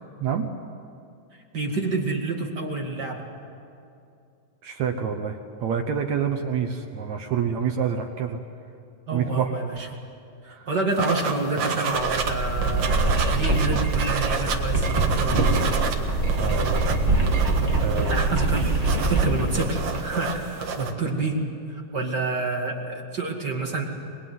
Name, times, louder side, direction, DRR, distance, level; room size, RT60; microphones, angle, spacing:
voice 1, 0.2-0.5 4.6-8.4 9.1-9.5 10.4-10.7 16.4-16.9 17.8-18.2, right 7 dB, 65° right, 5 dB, 1.9 m, -27 dB
voice 2, 1.5-3.3 9.1-9.9 10.7-15.5 18.1-21.4 21.7-23.9, right 3 dB, 35° right, 1 dB, 2.0 m, -28 dB
sound 1, 11.0-12.3 12.6-16.0 16.2-20.9, right 5 dB, 50° right, 2.2 m, -29 dB
sound 2, 11.9-20.4, right 2 dB, 15° right, 1.7 m, -24 dB
24.5 x 21.0 x 9.5 m, 2.5 s
omnidirectional pair, 4.2 m